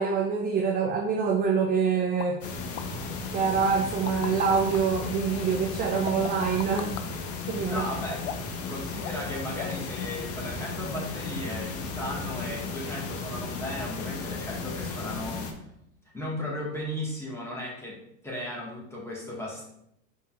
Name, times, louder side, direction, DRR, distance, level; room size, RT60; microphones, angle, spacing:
voice 1, 0.0-2.4 3.3-6.9 7.5-7.8, right 6 dB, 25° right, 2 dB, 0.4 m, -25 dB
sound 1, 2.2-2.3 2.8-2.9 3.7-4.8 6.1-7.1 8.2-8.6 9.0-9.3 9.6-9.9 10.1-10.2, left 11 dB, 65° left, 0.5 m, -37 dB
sound 2, 2.4-15.5, left 4 dB, 35° left, 0.8 m, -35 dB
voice 2, 7.7-15.5 16.1-19.7, left 1 dB, 5° left, -5 dB, 1.7 m, -36 dB
5.2 x 4.0 x 2.5 m, 0.78 s
hypercardioid pair, 105°, 39 cm